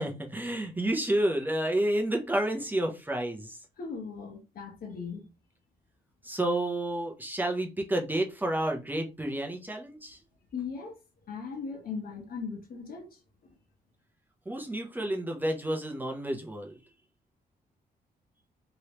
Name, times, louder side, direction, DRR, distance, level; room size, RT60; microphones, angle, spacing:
voice 1, 0.0-3.6 6.2-10.2 14.5-16.8, right 1 dB, 10° right, 0.7 m, -30 dB
voice 2, 3.8-5.3 10.5-11.0 11.3-13.6, left 5 dB, 60° left, 1.1 m, -39 dB
3.0 x 3.0 x 2.9 m
cardioid pair, 120°, 17 cm